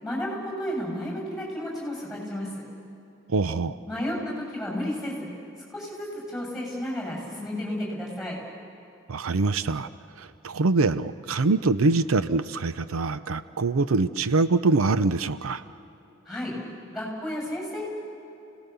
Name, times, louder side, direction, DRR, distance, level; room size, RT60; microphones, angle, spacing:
voice 1, 0.0-2.5 3.9-5.3 5.7-8.4 16.3-16.5 16.9-17.9, left 1 dB, ahead, -3 dB, 6.9 m, -32 dB
voice 2, 3.3-3.8 9.1-9.9 10.2-15.6, right 3 dB, 90° right, 14 dB, 0.6 m, -24 dB
29.5 x 18.0 x 7.0 m, 2.9 s
head